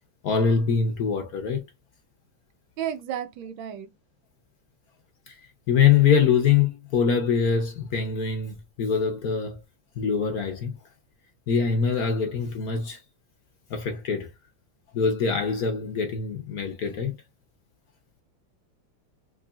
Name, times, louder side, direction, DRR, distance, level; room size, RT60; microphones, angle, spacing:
voice 1, 0.2-1.7 5.3-9.6 10.0-10.7 11.5-13.0 13.7-14.3 14.9-17.1, left 6 dB, 60° left, 1.0 m, -24 dB
voice 2, 2.8-3.9, right 10 dB, 80° right, 1.4 m, -32 dB
3.7 x 3.1 x 2.3 m
omnidirectional pair, 2.1 m